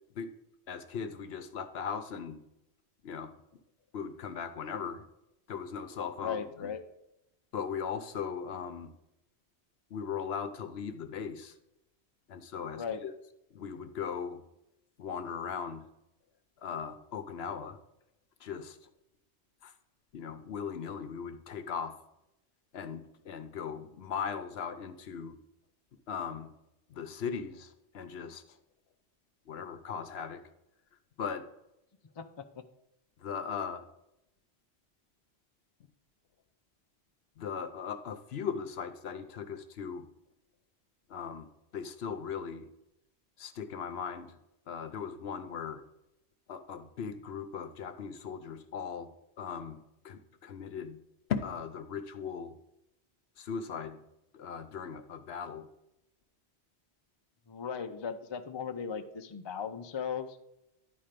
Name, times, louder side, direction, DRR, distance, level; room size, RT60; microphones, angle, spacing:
voice 1, 0.7-2.4 3.0-3.3 3.9-5.1 5.5-6.7 7.5-8.9 9.9-11.5 12.3-13.1 13.5-14.4 15.0-15.9 16.6-17.8 18.4-18.8 19.6-19.7 20.1-21.9 22.7-25.4 26.1-26.5 26.9-28.6 29.5-30.4 31.2-31.4 33.2-33.9 37.4-40.1 41.1-41.5 41.7-42.7 43.4-44.4 44.7-45.8 46.5-49.1 49.4-49.8 50.0-51.0 51.3-52.6 53.4-54.0 54.3-55.7, left 6 dB, 70° left, 10 dB, 0.9 m, -38 dB
voice 2, 6.2-6.8 12.8-13.0 32.2-32.4 57.5-60.4, left 7 dB, 35° left, 7 dB, 0.4 m, -37 dB
10.5 x 4.4 x 5.1 m, 0.87 s
omnidirectional pair, 1.1 m